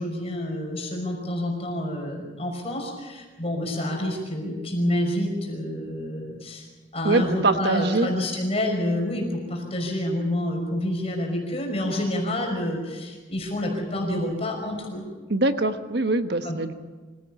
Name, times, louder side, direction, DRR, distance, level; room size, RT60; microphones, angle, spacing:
voice 1, 0.0-6.7 6.9-15.0 16.4-16.6, left 1 dB, 30° left, 1 dB, 5.5 m, -28 dB
voice 2, 7.0-8.1 15.3-16.7, right 2 dB, 55° right, 8 dB, 1.2 m, -23 dB
25.5 x 16.5 x 7.2 m, 1.3 s
head